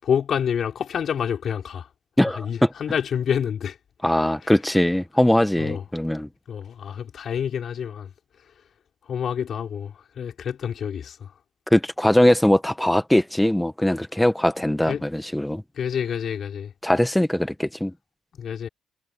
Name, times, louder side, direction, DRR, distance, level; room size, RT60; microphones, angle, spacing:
voice 1, 0.0-1.9 2.3-3.8 4.4-4.5 5.6-5.9 6.5-8.5 9.0-11.3 14.8-15.0 15.7-16.7 18.4-18.7, left 8 dB, 60° left, 5.8 m, -28 dB
voice 2, 4.0-6.3 11.7-15.6 16.8-17.9, left 1 dB, 5° left, 1.4 m, -21 dB
cardioid pair, 90°, 0 cm